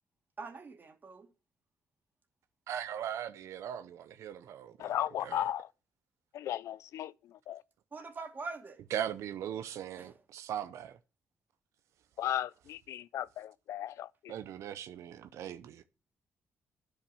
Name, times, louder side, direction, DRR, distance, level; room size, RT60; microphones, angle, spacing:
voice 1, 0.4-1.3 7.9-8.8 10.0-10.1, right 4 dB, 40° right, 2.3 m, -43 dB
voice 2, 2.7-4.9 5.2-5.5 8.9-11.0 14.3-15.8, right 10 dB, 85° right, 0.7 m, -39 dB
voice 3, 4.8-5.7 6.3-7.6 12.2-14.3, left 12 dB, 80° left, 0.4 m, -36 dB
9.7 x 5.8 x 6.9 m
cardioid pair, 90°, 5 cm